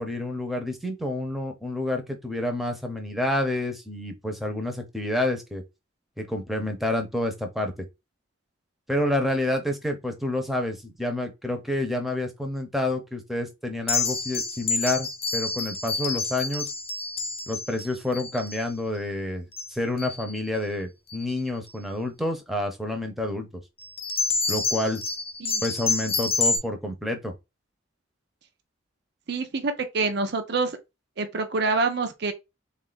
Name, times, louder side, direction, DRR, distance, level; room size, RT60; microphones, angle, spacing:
voice 1, 0.0-5.6 6.2-7.8 8.9-16.7 17.5-23.5 24.5-25.0 25.6-27.3, left 1 dB, ahead, 0.7 m, -29 dB
sound 1, 13.9-18.6 19.5-19.7 20.0-20.4 21.1-21.3 23.8-26.6, left 4 dB, 30° left, 0.9 m, -28 dB
voice 2, 29.3-30.8 31.2-32.3, right 3 dB, 60° right, 0.6 m, -26 dB
3.6 x 2.5 x 3.9 m
head